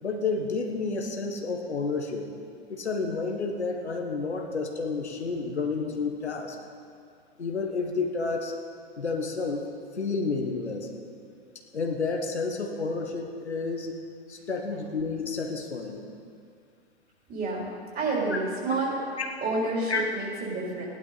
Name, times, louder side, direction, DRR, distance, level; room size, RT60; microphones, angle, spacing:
voice 1, 0.0-2.2 2.7-6.6 7.4-8.5 9.0-9.7 9.9-10.9 11.7-13.9 14.3-16.0 19.9-20.0, left 4 dB, 90° left, 2 dB, 1.5 m, -30 dB
voice 2, 17.3-17.7 17.9-19.0 19.4-20.9, right 3 dB, 25° right, -3 dB, 3.9 m, -29 dB
16.0 x 11.0 x 4.2 m, 2.4 s
hypercardioid pair, 105°, 32 cm